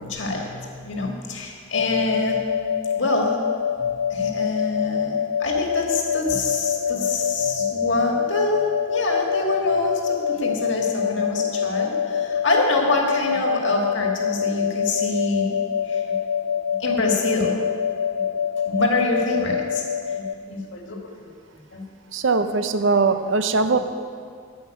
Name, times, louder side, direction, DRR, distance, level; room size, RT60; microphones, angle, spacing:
voice 1, 0.0-2.4 3.0-3.4 4.1-8.6 8.9-16.1 16.8-17.6 18.1-21.3 21.7-21.8 23.7-23.8, left 2 dB, 65° left, 1 dB, 2.0 m, -26 dB
sound 1, 1.7-20.3, left 8 dB, 85° left, 0.4 m, -25 dB
voice 2, 22.1-23.8, right 4 dB, 70° right, 10 dB, 0.7 m, -20 dB
14.5 x 5.7 x 9.2 m, 2.1 s
head